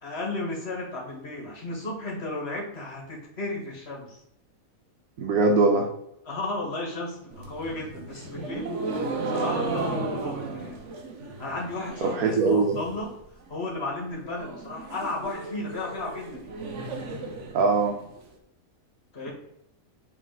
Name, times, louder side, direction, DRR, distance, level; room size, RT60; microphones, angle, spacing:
voice 1, 0.0-4.2 6.3-8.8 9.0-10.8 11.4-13.1 13.5-16.5 19.1-19.3, left 2 dB, 45° left, -1 dB, 2.0 m, -34 dB
voice 2, 5.2-5.9 12.0-12.8 17.5-17.9, right 3 dB, 80° right, 1 dB, 1.3 m, -21 dB
sound 1, 7.3-12.3 12.6-13.2 13.5-13.6 13.8-13.9 14.2-18.2, right 2 dB, 55° right, 1.2 m, -34 dB
6.5 x 3.7 x 4.0 m, 0.78 s
omnidirectional pair, 1.6 m